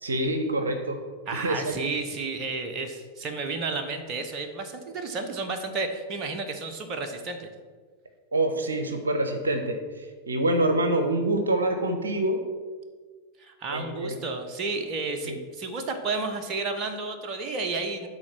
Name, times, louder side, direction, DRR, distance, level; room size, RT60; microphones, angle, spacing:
voice 1, 0.0-1.0 1.3-1.8 8.3-12.4 13.7-14.2 15.2-15.4, right 1 dB, 75° right, 6 dB, 0.8 m, -26 dB
voice 2, 1.3-7.5 13.4-18.1, right 3 dB, 35° right, 5 dB, 1.0 m, -32 dB
10.0 x 4.3 x 6.1 m, 1.5 s
figure-of-eight pair, 90°, 0 cm